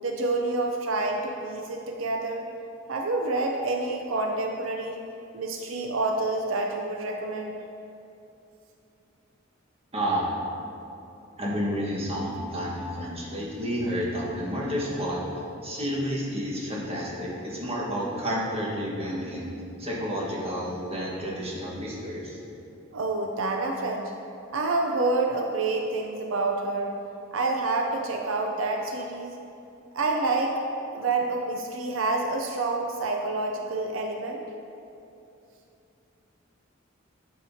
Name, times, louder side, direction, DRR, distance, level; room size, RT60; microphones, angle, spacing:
voice 1, 0.0-2.5 2.9-5.0 5.3-7.5 22.9-24.1 24.5-27.0 27.3-29.4 29.9-30.6 30.9-34.4, right 2 dB, 80° right, 2 dB, 0.5 m, -28 dB
voice 2, 9.9-10.3 11.4-19.5 19.8-22.4, equal, 30° right, -5 dB, 1.5 m, -30 dB
10.0 x 6.7 x 2.8 m, 2.7 s
head